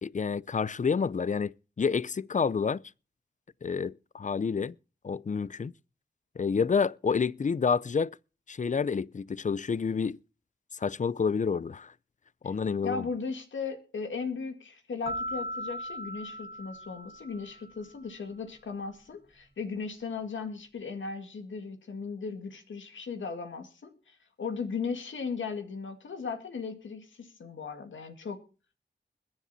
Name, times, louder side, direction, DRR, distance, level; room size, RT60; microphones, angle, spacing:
voice 1, 0.0-2.8 3.6-4.7 5.0-5.7 6.4-8.1 8.5-10.2 10.7-11.9 12.4-13.0, left 5 dB, 40° left, 0.5 m, -29 dB
voice 2, 12.8-28.4, left 5 dB, 85° left, 2.0 m, -37 dB
sound 1, 15.1-17.8, equal, 30° right, 2.3 m, -38 dB
21.5 x 7.4 x 4.2 m
cardioid pair, 45°, 19 cm